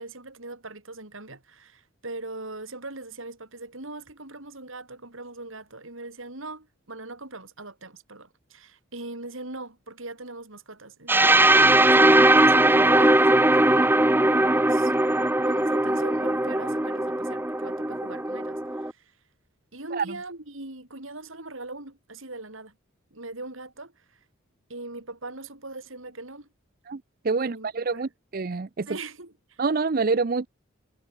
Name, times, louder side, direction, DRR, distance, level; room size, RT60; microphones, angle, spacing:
voice 1, 0.0-15.1 15.4-19.2 19.7-22.8 23.1-24.2 24.7-26.5 27.3-28.1 28.9-29.6, right 2 dB, 70° right, 4.7 m, -41 dB
sound 1, 11.1-18.9, right 1 dB, 10° right, 0.9 m, -20 dB
voice 2, 26.9-28.9 29.6-30.5, right 4 dB, 45° right, 0.5 m, -27 dB
head